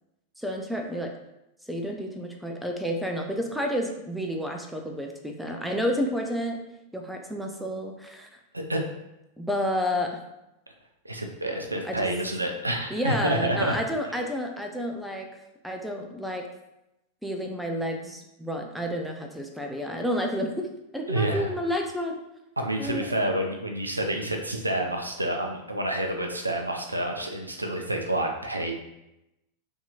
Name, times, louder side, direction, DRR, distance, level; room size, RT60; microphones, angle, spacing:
voice 1, 0.4-1.1 1.7-6.6 6.9-8.4 9.4-10.2 11.8-12.1 12.9-15.3 15.6-16.5 17.2-22.2 22.8-23.1, equal, ahead, 3 dB, 0.3 m, -30 dB
voice 2, 11.0-13.8 21.1-21.5 22.6-28.7, right 1 dB, 85° right, 2 dB, 0.3 m, -28 dB
2.7 x 2.6 x 2.3 m, 0.90 s
figure-of-eight pair, 90°, 0 cm